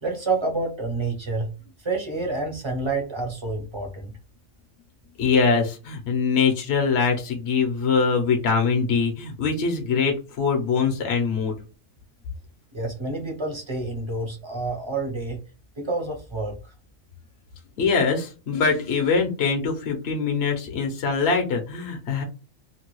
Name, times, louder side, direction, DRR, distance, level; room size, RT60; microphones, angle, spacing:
voice 1, 0.0-1.5 1.8-4.1 12.7-15.4 15.8-16.7, right 3 dB, 30° right, 2 dB, 0.6 m, -28 dB
voice 2, 5.2-11.5 17.8-22.2, left 5 dB, 60° left, 3 dB, 0.9 m, -23 dB
2.9 x 2.2 x 3.0 m, 0.32 s
omnidirectional pair, 1.4 m